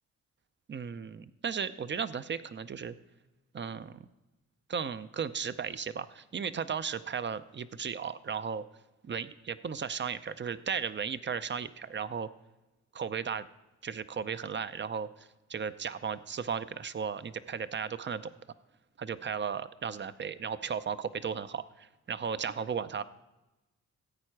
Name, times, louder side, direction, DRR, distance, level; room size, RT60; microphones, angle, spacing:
voice 1, 0.7-2.9 3.5-4.0 4.7-8.7 9.0-12.3 12.9-13.5 13.8-18.3 19.0-23.0, right 6 dB, 40° right, 14 dB, 0.6 m, -35 dB
14.5 x 8.7 x 4.6 m, 1.0 s
cardioid pair, 85°, 30 cm